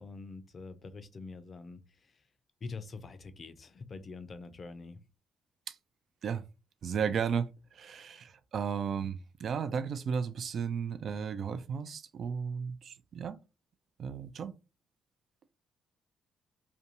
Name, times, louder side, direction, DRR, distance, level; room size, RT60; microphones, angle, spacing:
voice 1, 0.0-2.2 2.6-5.0, left 4 dB, 45° left, 0.4 m, -45 dB
voice 2, 6.8-7.5 7.7-13.4 14.0-14.5, right 6 dB, 60° right, 0.3 m, -34 dB
2.5 x 2.2 x 2.8 m
supercardioid pair, 60°, 0 cm